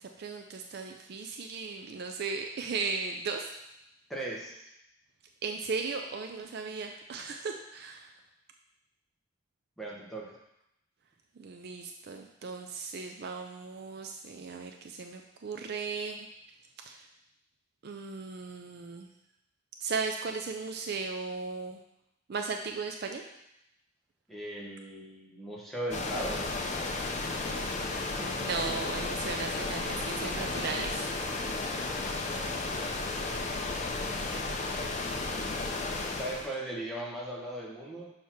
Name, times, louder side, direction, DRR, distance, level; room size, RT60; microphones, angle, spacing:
voice 1, 0.0-3.5 5.4-8.1 11.4-16.3 16.8-17.1 17.8-19.1 19.8-21.8 22.3-23.2 28.2-31.1, right 4 dB, 50° right, 3 dB, 0.4 m, -36 dB
voice 2, 4.1-4.6 9.8-10.4 24.3-26.5 31.4-31.6 36.1-38.1, right 1 dB, ahead, -4 dB, 0.9 m, -38 dB
sound 1, 25.9-36.5, left 3 dB, 35° left, 0.5 m, -33 dB
6.5 x 2.8 x 5.7 m, 0.84 s
head